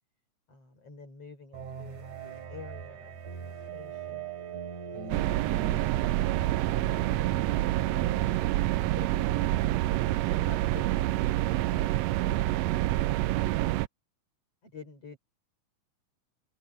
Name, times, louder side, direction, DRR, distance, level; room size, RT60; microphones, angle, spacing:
voice 1, 0.5-4.3 4.9-6.2 7.2-7.5 9.0-13.5 14.6-15.2, left 4 dB, 50° left, 7.3 m, -50 dB
sound 1, 1.5-8.4, right 6 dB, 70° right, 5.0 m, -40 dB
sound 2, 5.1-13.9, right 16 dB, 90° right, 1.5 m, -27 dB
open air
omnidirectional pair, 3.6 m